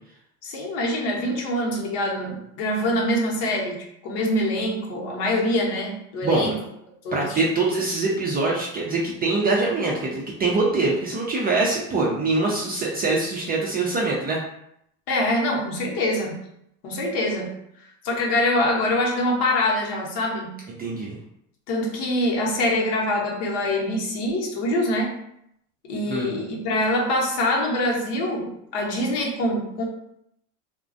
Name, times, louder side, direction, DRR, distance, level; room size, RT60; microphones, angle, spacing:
voice 1, 0.4-3.8 4.0-6.5 7.0-7.4 15.1-16.4 16.8-17.5 18.0-20.5 21.7-25.2 25.9-29.8, left 1 dB, 60° left, -1 dB, 0.9 m, -24 dB
voice 2, 6.2-6.5 7.1-14.4 20.8-21.2 26.1-26.3, right 3 dB, 25° right, -4 dB, 0.3 m, -23 dB
2.3 x 2.1 x 2.5 m, 0.76 s
hypercardioid pair, 85°, 45 cm